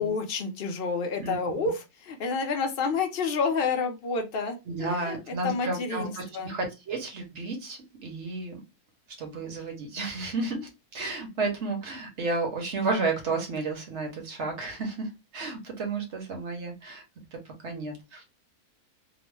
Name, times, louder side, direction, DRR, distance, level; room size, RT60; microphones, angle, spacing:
voice 1, 0.0-6.5, left 4 dB, 55° left, 4 dB, 0.6 m, -29 dB
voice 2, 1.2-1.7 4.7-8.6 9.2-17.0 17.3-18.2, right 3 dB, 55° right, 3 dB, 1.0 m, -32 dB
2.9 x 2.0 x 3.1 m, 0.24 s
omnidirectional pair, 1.6 m